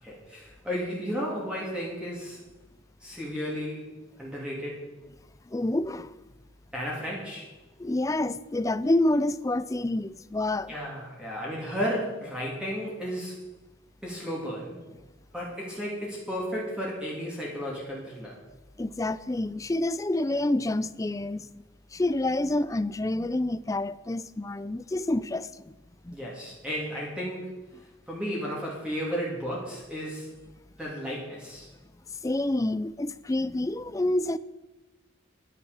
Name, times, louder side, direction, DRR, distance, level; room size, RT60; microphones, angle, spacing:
voice 1, 0.0-2.4 3.0-4.8 6.7-7.5 10.7-13.4 14.0-14.8 15.3-18.4 26.1-27.5 28.1-30.3 30.8-31.7, equal, 5° right, 2.9 m, -33 dB
voice 2, 5.5-6.2 7.8-10.7 18.8-21.5 21.9-25.7 26.0-26.2 32.2-34.4, left 1 dB, 15° left, 0.4 m, -28 dB
11.0 x 10.0 x 7.1 m
head